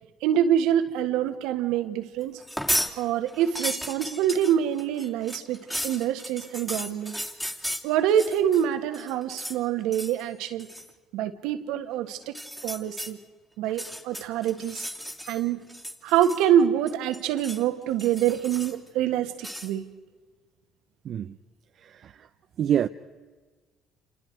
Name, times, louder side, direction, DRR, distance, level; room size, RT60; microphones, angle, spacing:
voice 1, 0.2-2.4 3.0-7.2 7.8-10.7 11.1-12.4 12.6-13.2 13.6-14.9 15.3-15.6 16.0-19.9, right 10 dB, 80° right, 1.6 m, -25 dB
sound 1, 2.4-2.9 3.3-8.6 8.9-9.6 9.9-10.2 10.6-10.9 12.2-13.1 13.7-15.4 15.7-16.6 16.9-17.6 18.0-18.9 19.4-19.7, equal, 5° left, 2.9 m, -34 dB
voice 2, 21.8-22.1 22.6-22.9, right 10 dB, 60° right, 0.7 m, -26 dB
28.5 x 28.0 x 4.7 m
supercardioid pair, 70°, 0 cm